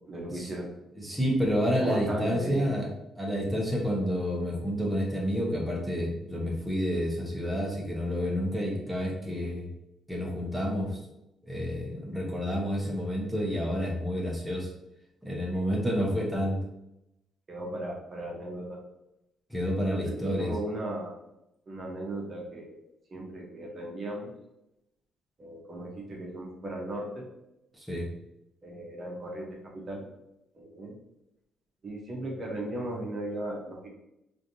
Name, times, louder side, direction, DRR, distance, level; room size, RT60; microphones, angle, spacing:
voice 1, 0.1-0.7 1.8-2.7 17.5-18.8 19.9-21.2 21.7-22.8 23.1-24.3 25.4-27.3 28.6-30.1 30.5-31.0 31.8-33.9, right 1 dB, 40° right, -2 dB, 0.8 m, -36 dB
voice 2, 1.0-2.9 3.2-9.7 10.1-11.0 11.4-14.7 15.2-16.6 19.5-20.5 27.7-28.1, equal, 5° right, -3 dB, 0.8 m, -29 dB
3.2 x 2.6 x 2.6 m, 0.86 s
cardioid pair, 95°, 0 cm